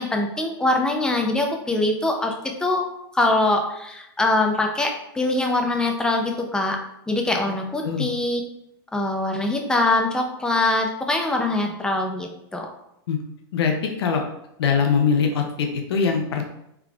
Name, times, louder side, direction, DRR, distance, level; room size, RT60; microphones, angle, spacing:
voice 1, 0.0-2.9 3.1-6.8 7.1-8.4 8.9-12.7, left 2 dB, 5° left, 2 dB, 0.4 m, -23 dB
voice 2, 13.5-14.2 14.6-16.4, left 6 dB, 90° left, 3 dB, 0.6 m, -22 dB
3.7 x 3.4 x 2.3 m, 0.80 s
supercardioid pair, 145°, 13 cm